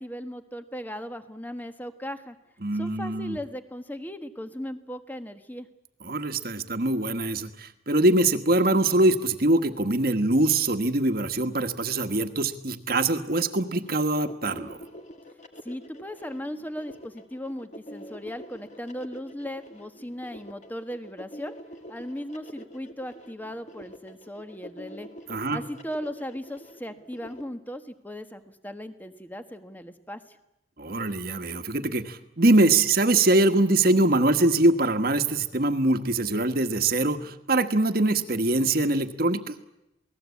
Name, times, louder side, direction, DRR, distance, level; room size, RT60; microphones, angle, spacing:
voice 1, 0.0-2.4 2.7-5.7 15.6-21.5 21.9-25.1 25.5-30.4, equal, 10° left, 9 dB, 1.4 m, -37 dB
voice 2, 2.6-3.4 6.0-14.8 25.3-25.6 30.8-39.5, right 2 dB, 50° right, 8 dB, 1.5 m, -23 dB
sound 1, 13.7-27.4, equal, 40° left, 2.1 m, -45 dB
28.0 x 19.0 x 8.5 m, 0.90 s
head